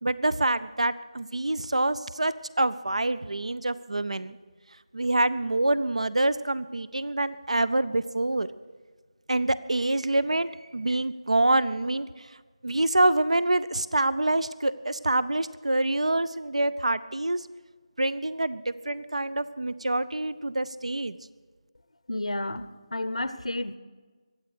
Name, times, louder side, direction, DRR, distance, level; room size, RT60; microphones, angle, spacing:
voice 1, 0.0-4.4 4.9-8.5 9.3-12.3 12.6-17.5 18.0-21.2, right 2 dB, 75° right, 17 dB, 0.6 m, -26 dB
voice 2, 22.1-23.8, left 1 dB, 70° left, 15 dB, 0.8 m, -31 dB
23.5 x 8.5 x 6.7 m, 1.4 s
figure-of-eight pair, 160°, 3 cm